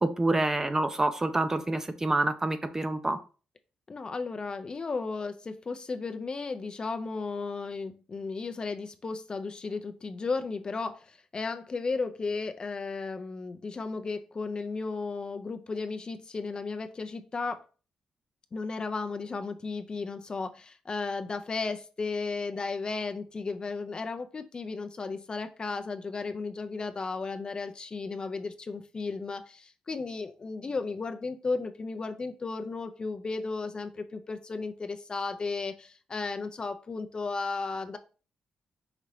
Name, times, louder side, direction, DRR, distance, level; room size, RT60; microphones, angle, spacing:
voice 1, 0.0-3.2, right 2 dB, 20° right, 9 dB, 0.5 m, -27 dB
voice 2, 3.9-17.6 18.5-38.0, left 4 dB, 35° left, 7 dB, 0.5 m, -34 dB
4.9 x 2.8 x 3.1 m, 0.35 s
cardioid pair, 80°, 2 cm